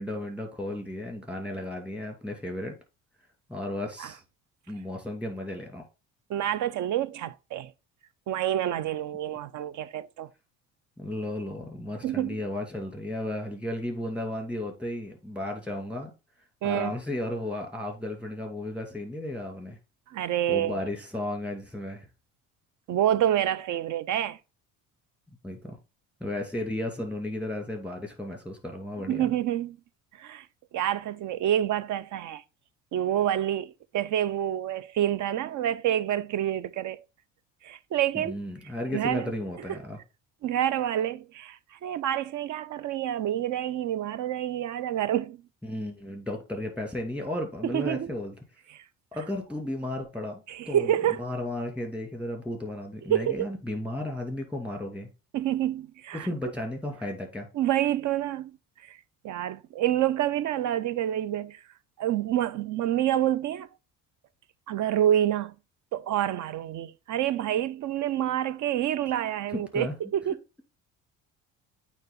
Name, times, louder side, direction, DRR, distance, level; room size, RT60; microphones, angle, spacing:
voice 1, 0.0-2.8 3.5-4.2 4.7-5.9 11.0-16.1 16.6-19.8 20.5-22.1 25.4-25.8 26.2-29.3 38.1-40.0 45.6-48.3 49.1-50.4 50.7-50.9 51.2-55.1 56.1-57.5 69.5-70.0, left 1 dB, 5° right, 2.5 m, -34 dB
voice 2, 6.3-7.7 8.3-10.3 12.0-12.4 16.6-16.9 20.1-20.8 22.9-24.4 29.1-29.8 30.1-30.5 30.7-32.4 32.9-37.0 37.6-38.3 38.9-39.3 39.7-39.8 40.4-45.4 47.6-48.1 48.7-48.8 50.5-51.2 53.1-53.5 55.3-56.3 57.5-58.6 58.8-59.0 59.2-61.6 62.0-63.7 64.7-65.6 65.9-70.4, right 11 dB, 55° right, 0.6 m, -28 dB
8.8 x 3.1 x 3.8 m
supercardioid pair, 75°, 36 cm